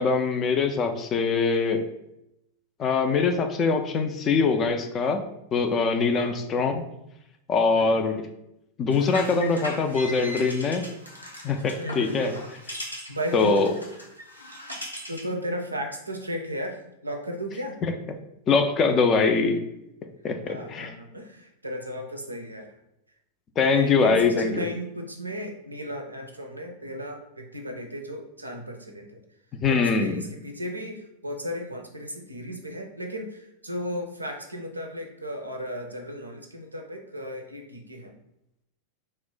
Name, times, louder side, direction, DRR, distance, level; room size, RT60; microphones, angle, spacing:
voice 1, 0.0-1.8 2.8-5.2 5.5-6.8 7.5-8.2 8.8-10.8 11.4-12.3 13.3-13.7 17.8-17.9 18.5-19.6 20.2-20.9 23.6-24.7 29.6-30.2, left 4 dB, 25° left, 6 dB, 0.3 m, -23 dB
sound 1, 8.9-15.3, left 1 dB, 85° left, 0.6 m, -39 dB
voice 2, 11.8-12.5 13.1-13.6 15.1-17.8 20.5-22.7 23.7-29.1 29.7-38.1, equal, 85° right, 3 dB, 0.4 m, -35 dB
2.5 x 2.0 x 3.7 m, 0.84 s
figure-of-eight pair, 90°, 0 cm